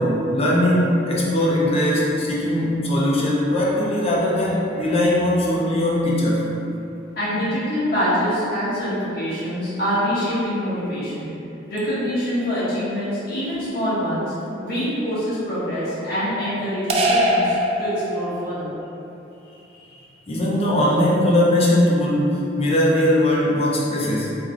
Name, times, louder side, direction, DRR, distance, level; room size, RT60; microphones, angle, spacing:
voice 1, 0.0-6.4 20.3-24.3, left 1 dB, 35° left, -5 dB, 0.6 m, -20 dB
voice 2, 7.2-11.3 11.7-14.3 14.6-18.7 19.7-20.0, equal, 60° left, -11 dB, 1.3 m, -25 dB
sound 1, 16.9-18.6, equal, 35° right, 0.3 m, -21 dB
3.3 x 2.2 x 3.6 m, 2.8 s
head